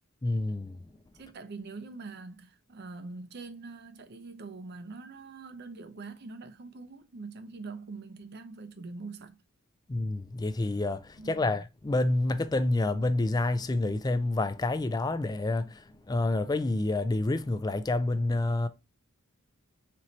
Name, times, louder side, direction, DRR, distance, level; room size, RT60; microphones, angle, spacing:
voice 1, 0.2-0.8 9.9-18.7, left 2 dB, 20° left, 0.4 m, -28 dB
voice 2, 1.1-9.4 11.2-11.5, right 3 dB, 50° right, 0.7 m, -44 dB
4.3 x 3.1 x 3.9 m
head